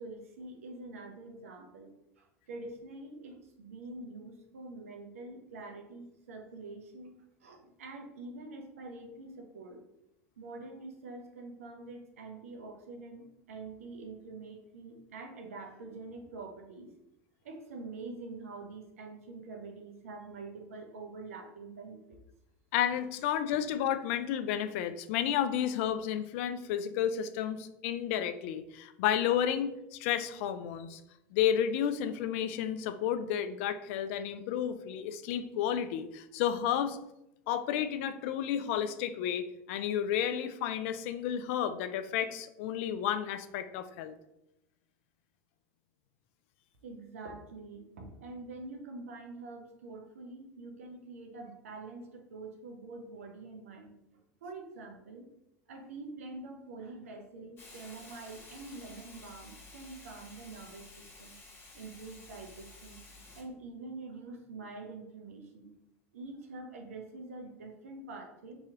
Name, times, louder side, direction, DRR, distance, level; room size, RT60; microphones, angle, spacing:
voice 1, 0.0-9.8 10.4-16.9 17.4-22.2 46.8-53.9 54.4-55.3 55.7-61.4 61.7-63.0 63.3-65.7 66.1-68.6, right 3 dB, 80° right, 4 dB, 0.7 m, -46 dB
voice 2, 22.7-31.0 31.3-37.0 37.5-44.1, left 9 dB, 65° left, 11 dB, 0.3 m, -31 dB
Hiss, 57.6-63.4, left 2 dB, 30° left, 1.2 m, -52 dB
3.1 x 2.8 x 3.5 m, 0.85 s
hypercardioid pair, 80°, 7 cm